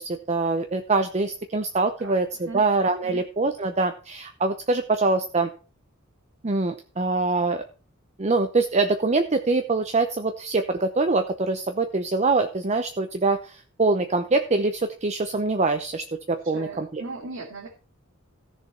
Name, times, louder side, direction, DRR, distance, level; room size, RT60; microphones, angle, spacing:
voice 1, 0.0-5.5 6.4-7.6 8.2-17.0, right 3 dB, 35° right, 7 dB, 0.7 m, -24 dB
voice 2, 2.0-2.6 3.0-3.2 16.4-17.7, right 3 dB, 75° right, -1 dB, 2.5 m, -38 dB
15.0 x 6.8 x 4.3 m, 0.37 s
head